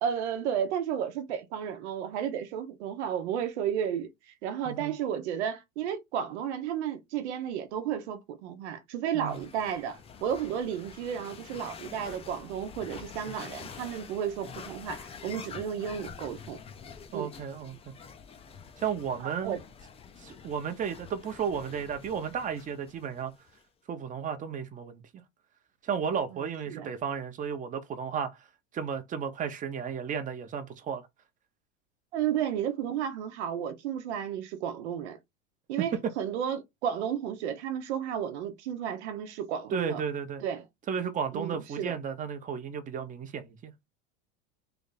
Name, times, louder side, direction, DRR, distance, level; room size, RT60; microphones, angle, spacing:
voice 1, 0.0-16.6 17.1-17.3 19.2-19.6 26.3-26.4 26.7-26.9 32.1-35.2 35.7-40.0 40.4-40.6 41.3-42.0, right 9 dB, 85° right, 0.9 m, -33 dB
sound 1, 9.3-23.6, left 6 dB, 20° left, 0.5 m, -47 dB
voice 2, 17.1-17.9 18.8-19.6 20.2-23.3 23.9-25.0 25.8-28.4 28.7-31.0 35.9-36.1 39.7-40.4 40.9-43.7, right 7 dB, 25° right, 0.7 m, -33 dB
3.4 x 2.5 x 4.0 m
supercardioid pair, 135°, 33 cm